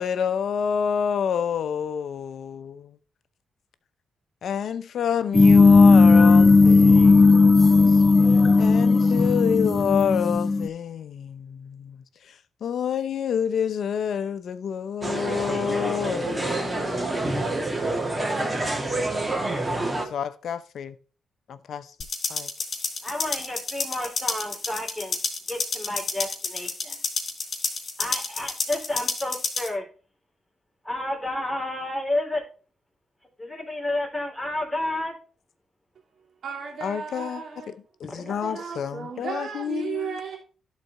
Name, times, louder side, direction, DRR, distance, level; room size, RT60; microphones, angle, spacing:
voice 1, 0.0-3.0 4.4-7.9 8.6-12.0 12.6-17.5 20.1-21.0 21.5-21.9 22.3-22.5 36.8-37.4 38.0-40.2, left 7 dB, 70° left, 0.7 m, -28 dB
sound 1, 5.3-10.7, left 3 dB, 30° left, 0.5 m, -15 dB
sound 2, 15.0-20.0, right 2 dB, 25° right, 2.1 m, -27 dB
sound 3, 22.0-29.7, left 3 dB, 50° left, 3.6 m, -30 dB
voice 2, 23.0-25.2 25.5-27.0 28.0-29.8 30.8-32.4 33.4-35.1 38.1-38.6, left 1 dB, 5° left, 3.0 m, -31 dB
voice 3, 36.4-37.8 38.2-40.4, right 6 dB, 70° right, 2.5 m, -35 dB
12.0 x 4.1 x 4.2 m
cardioid pair, 60°, 0 cm